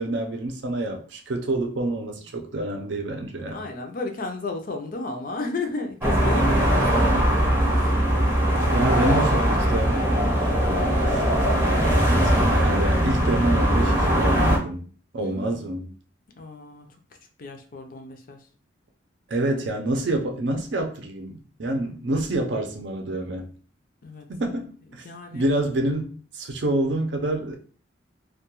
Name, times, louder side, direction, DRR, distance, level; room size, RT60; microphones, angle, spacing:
voice 1, 0.0-3.6 8.5-11.2 12.5-14.9 15.1-15.9 19.3-23.5 24.3-25.0 25.3-27.6, right 1 dB, 70° right, 0.5 m, -27 dB
voice 2, 3.5-7.2 7.7-8.0 8.7-9.4 10.7-11.2 15.2-15.8 16.4-17.0 17.4-18.4 24.0-24.3 25.0-25.5, left 3 dB, 45° left, 0.4 m, -33 dB
sound 1, 6.0-14.6, equal, 10° right, 0.6 m, -20 dB
2.2 x 2.2 x 2.9 m
head